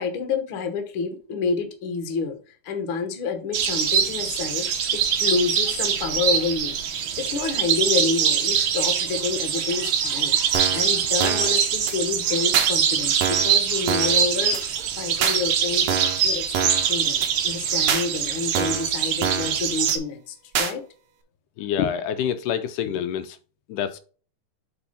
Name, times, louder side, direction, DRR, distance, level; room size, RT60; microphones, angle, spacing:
voice 1, 0.0-2.4 2.6-20.8, left 5 dB, 55° left, 1.6 m, -29 dB
sound 1, 3.5-20.0, right 8 dB, 85° right, 1.2 m, -23 dB
sound 2, 10.5-10.9 11.2-11.5 11.9-12.0 12.5-12.7 13.2-13.5 13.9-14.2 14.5-14.6 15.2-15.4 15.9-16.2 16.5-16.9 17.2-17.3 17.9-18.1 18.6-18.9 19.2-19.5 19.9-20.0 20.6-20.7, right 7 dB, 65° right, 1.9 m, -25 dB
voice 2, 21.6-23.4 23.7-24.0, left 8 dB, 85° left, 2.1 m, -26 dB
6.9 x 4.3 x 4.2 m
omnidirectional pair, 3.7 m